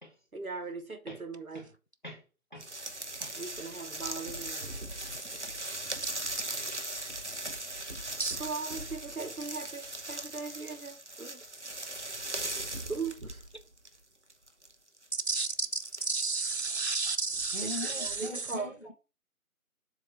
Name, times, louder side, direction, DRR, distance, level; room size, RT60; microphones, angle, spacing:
voice 1, 0.3-1.7 2.6-2.7 3.0-4.7 8.4-11.4 12.9-13.4 17.6-18.8, right 4 dB, 70° right, 1.4 m, -39 dB
sound 1, 2.6-14.0 14.3-16.6 17.3-17.5 18.1-18.2, right 2 dB, 50° right, 0.9 m, -39 dB
voice 2, 15.3-18.3, right 4 dB, 50° left, 0.4 m, -32 dB
voice 3, 17.5-18.9, left 2 dB, 30° left, 1.5 m, -41 dB
7.4 x 3.1 x 5.9 m
figure-of-eight pair, 175°, 44 cm